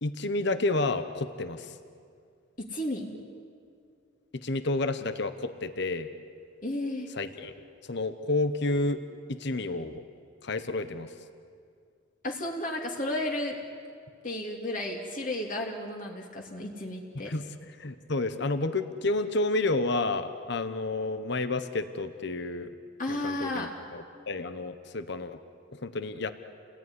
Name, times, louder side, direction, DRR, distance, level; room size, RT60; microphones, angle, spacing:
voice 1, 0.0-1.7 4.3-6.1 7.2-7.5 7.8-9.0 9.3-10.0 10.4-11.1 17.2-17.5 17.8-22.7 23.1-25.4 25.7-26.3, left 2 dB, 60° left, 10 dB, 1.1 m, -30 dB
voice 2, 2.6-3.2 6.6-7.1 12.2-13.6 14.2-17.3 23.0-23.7, left 1 dB, 45° left, 0 dB, 2.9 m, -33 dB
29.5 x 19.5 x 9.9 m, 2.3 s
head